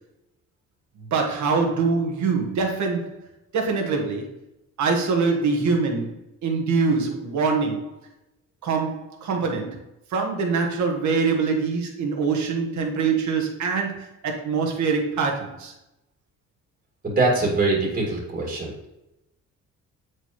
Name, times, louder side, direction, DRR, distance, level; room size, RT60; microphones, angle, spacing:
voice 1, 1.0-3.1 3.5-4.3 4.8-6.1 6.4-7.9 8.6-9.8 10.1-15.7, right 4 dB, 70° right, 2 dB, 1.5 m, -24 dB
voice 2, 17.0-18.7, right 3 dB, 30° right, -2 dB, 2.1 m, -23 dB
7.7 x 4.7 x 3.1 m, 0.88 s
cardioid pair, 90°, 30 cm